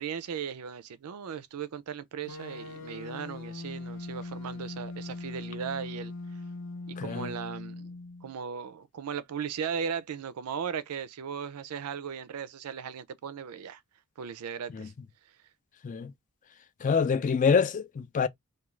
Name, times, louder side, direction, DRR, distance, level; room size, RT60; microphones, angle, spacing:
voice 1, 0.0-6.1 6.9-7.9 8.2-13.8 14.2-14.9, right 7 dB, 90° right, 0.4 m, -37 dB
sound 1, 2.3-8.3, left 2 dB, 60° left, 0.7 m, -40 dB
voice 2, 7.0-7.3 14.7-14.9 15.8-16.1 16.8-18.3, left 6 dB, 35° left, 0.3 m, -26 dB
2.4 x 2.3 x 3.0 m
head